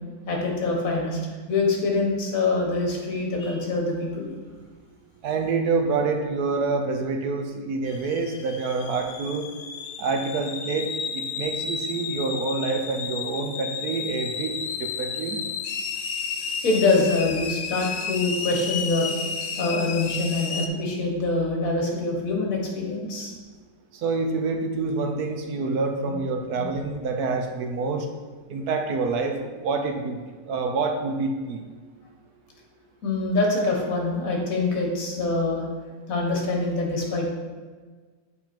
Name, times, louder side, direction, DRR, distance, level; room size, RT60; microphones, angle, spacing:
voice 1, 0.3-1.2 1.5-4.3 16.6-19.1 19.6-23.3 26.6-26.7 33.0-35.6 36.1-37.3, left 3 dB, 55° left, -1 dB, 1.6 m, -25 dB
voice 2, 5.2-9.4 10.0-14.5 14.8-15.4 23.9-28.1 28.5-29.4 29.6-30.2 30.5-31.6, right 4 dB, 70° right, 4 dB, 1.2 m, -27 dB
sound 1, 7.9-20.7, left 6 dB, 80° left, 0.6 m, -32 dB
7.8 x 4.1 x 4.4 m, 1.4 s
omnidirectional pair, 1.8 m